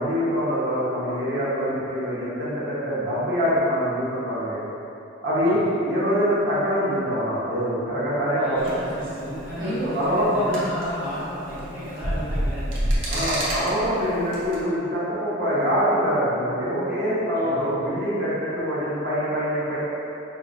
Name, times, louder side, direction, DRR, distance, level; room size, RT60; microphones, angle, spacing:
voice 1, 0.0-4.6 5.2-8.9 9.9-10.6 13.1-19.8, equal, 60° right, -10 dB, 1.2 m, -24 dB
voice 2, 5.4-5.7 8.4-12.9 17.3-17.7, equal, 10° right, -14 dB, 1.4 m, -34 dB
sound 1, 8.6-14.6, equal, 80° right, 0.9 m, -29 dB
5.3 x 2.8 x 2.5 m, 2.9 s
head